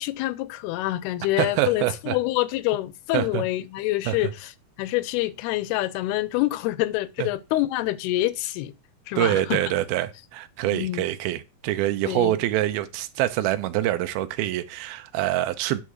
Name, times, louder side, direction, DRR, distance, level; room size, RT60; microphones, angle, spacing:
voice 1, 0.0-4.5 4.8-8.7 9.1-9.6 10.7-11.0 12.0-12.4, left 16 dB, 85° left, 2.6 m, -26 dB
voice 2, 1.4-2.2 3.1-3.5 4.1-4.2 7.2-7.3 9.2-15.8, right 14 dB, 85° right, 2.5 m, -25 dB
9.7 x 3.7 x 6.3 m
omnidirectional pair, 4.4 m